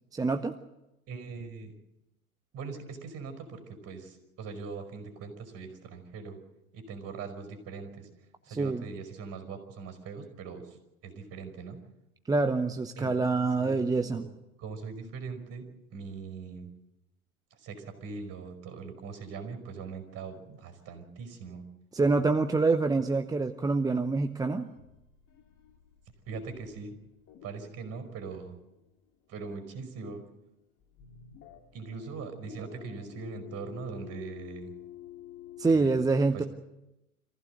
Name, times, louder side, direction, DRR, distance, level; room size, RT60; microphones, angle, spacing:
voice 1, 0.1-0.6 8.5-8.8 12.3-14.3 21.9-24.7 35.6-36.4, right 3 dB, 10° right, 7 dB, 0.8 m, -26 dB
voice 2, 1.1-1.7 2.5-6.4 6.7-8.1 8.4-10.8 11.0-11.8 13.0-14.2 14.6-16.7 17.5-21.6 26.3-27.0 27.4-28.6 29.3-30.2 31.7-34.7 35.7-35.9 36.3-36.5, right 5 dB, 35° right, 7 dB, 5.3 m, -41 dB
sound 1, 24.2-29.6 29.9-30.4 30.8-35.8, left 12 dB, 40° left, 2.8 m, -51 dB
26.5 x 15.5 x 7.9 m, 0.95 s
hypercardioid pair, 100°, 43 cm